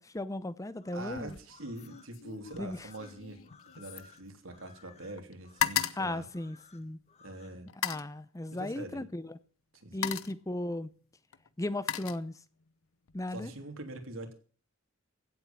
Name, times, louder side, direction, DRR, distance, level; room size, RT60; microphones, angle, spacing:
voice 1, 0.0-1.4 2.6-2.9 6.0-7.0 7.8-9.4 9.9-10.9 11.6-12.4 13.1-13.5, left 1 dB, 15° left, 0.6 m, -36 dB
sound 1, 0.7-7.6, left 6 dB, 30° left, 1.4 m, -60 dB
voice 2, 0.9-6.2 7.2-7.7 8.5-9.0 9.8-10.1 13.3-14.3, right 2 dB, 75° right, 3.2 m, -44 dB
sound 2, 1.1-1.5 1.8-4.9 5.2-7.1 7.7-8.2 9.2-9.4 9.8-10.5 11.3-12.7 13.1-13.5, left 9 dB, 85° left, 0.8 m, -37 dB
16.0 x 8.4 x 7.3 m
head